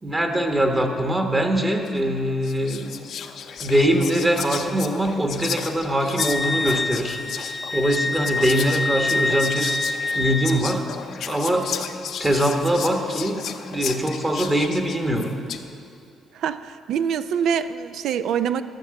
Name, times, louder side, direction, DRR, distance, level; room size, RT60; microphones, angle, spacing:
voice 1, 0.0-2.9 3.6-7.2 7.7-9.7 10.1-10.8 11.2-11.7 12.2-15.3, right 1 dB, 20° right, 3 dB, 1.1 m, -22 dB
Whispering, 1.9-2.1 2.4-15.7, left 8 dB, 70° left, 0.6 m, -34 dB
Wind instrument woodwind instrument, 6.2-10.7, left 2 dB, 15° left, 0.4 m, -26 dB
voice 2, 16.3-18.6, right 8 dB, 80° right, 13 dB, 0.4 m, -25 dB
13.0 x 6.0 x 7.6 m, 2.6 s
cardioid pair, 90°, 0 cm